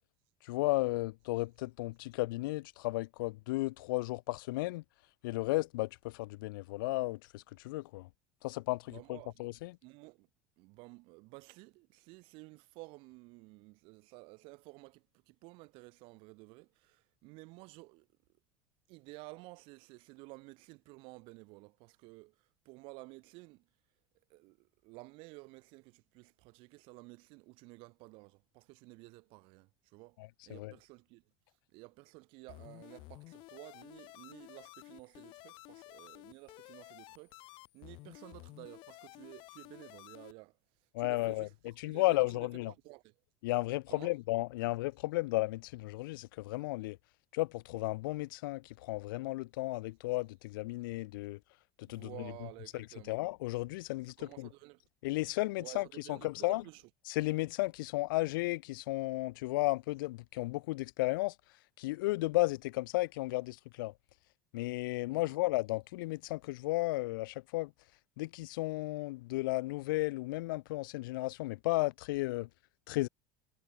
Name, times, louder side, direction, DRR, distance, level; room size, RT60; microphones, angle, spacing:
voice 1, 0.4-4.8 5.2-8.1 8.4-9.7 30.5-30.7 40.9-41.5 41.8-42.7 43.4-47.0 47.3-51.4 51.9-52.1 52.7-54.5 55.0-56.6 57.1-61.3 61.8-63.9 64.5-67.7 68.2-72.5 72.9-73.1, left 20 dB, 90° left, 0.6 m, -34 dB
voice 2, 8.9-9.5 9.8-10.3 10.6-18.1 18.9-23.7 24.3-31.2 31.7-40.6 41.0-43.1 43.9-44.2 51.9-53.2 54.2-54.8 55.6-56.8 65.1-65.4, right 26 dB, 55° right, 2.5 m, -53 dB
sound 1, 32.5-40.3, left 21 dB, 50° left, 2.2 m, -53 dB
cardioid pair, 155°, 11 cm